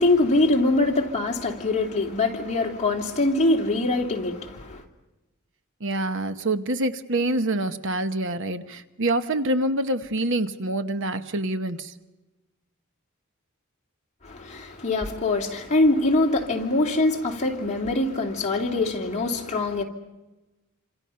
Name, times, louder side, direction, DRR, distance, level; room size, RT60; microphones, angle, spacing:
voice 1, 0.0-4.8 14.2-19.8, left 2 dB, 30° left, 2.8 m, -23 dB
voice 2, 5.8-11.9, right 1 dB, 60° right, 1.1 m, -26 dB
27.5 x 27.0 x 5.7 m
head